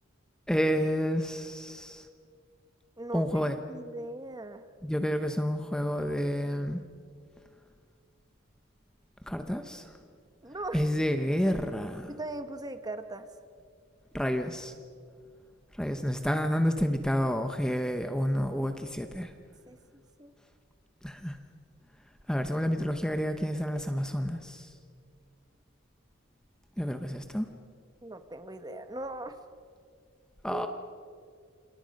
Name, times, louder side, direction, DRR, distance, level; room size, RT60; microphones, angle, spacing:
voice 1, 0.5-2.1 3.1-3.6 4.8-6.8 9.3-9.9 10.7-12.1 14.1-14.7 15.8-19.3 21.0-21.4 22.3-24.7 26.8-27.5 30.4-30.7, equal, 5° left, 6 dB, 0.9 m, -29 dB
voice 2, 3.0-4.6 10.4-10.8 12.1-13.3 19.7-19.8 20.2-20.3 28.0-29.3 30.5-30.7, right 2 dB, 20° right, 9 dB, 1.2 m, -39 dB
29.0 x 27.0 x 5.4 m, 2.2 s
head